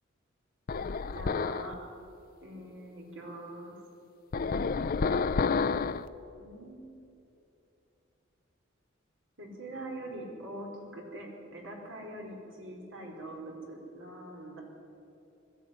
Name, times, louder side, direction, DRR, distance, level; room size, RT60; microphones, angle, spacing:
sound 1, 0.7-1.7 4.3-6.1, left 4 dB, 45° left, 0.5 m, -29 dB
voice 1, 1.1-1.8 2.4-3.7 6.3-6.9 9.4-10.7 10.9-14.6, right 1 dB, 65° right, 0 dB, 4.5 m, -43 dB
20.5 x 13.0 x 9.6 m, 2.8 s
head